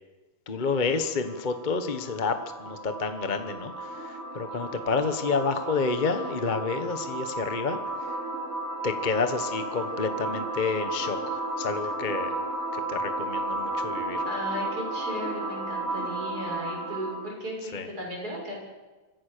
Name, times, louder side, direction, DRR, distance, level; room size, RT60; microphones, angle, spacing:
voice 1, 0.5-7.8 8.8-12.4 12.7-14.2 17.7-17.9, left 4 dB, 25° left, 8 dB, 1.1 m, -29 dB
sound 1, 0.7-17.3, right 1 dB, 85° right, 4.9 m, -33 dB
voice 2, 14.2-18.6, equal, 45° right, -2 dB, 7.6 m, -36 dB
26.0 x 15.5 x 6.8 m, 1.2 s
omnidirectional pair, 2.4 m